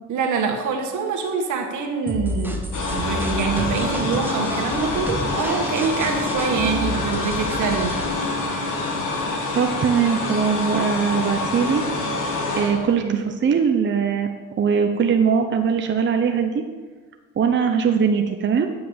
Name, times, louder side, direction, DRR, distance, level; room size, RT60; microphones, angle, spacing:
voice 1, 0.1-2.6 2.9-8.0 13.0-13.3, right 5 dB, 75° right, 2 dB, 1.6 m, -25 dB
sound 1, 2.1-8.1, equal, 5° right, 1.2 m, -31 dB
sound 2, 2.7-13.0, left 3 dB, 85° left, 1.9 m, -26 dB
voice 2, 9.5-11.8 12.6-16.6 17.4-18.7, right 6 dB, 40° right, 5 dB, 0.8 m, -21 dB
8.6 x 5.8 x 7.1 m, 1.4 s
cardioid pair, 90°, 30 cm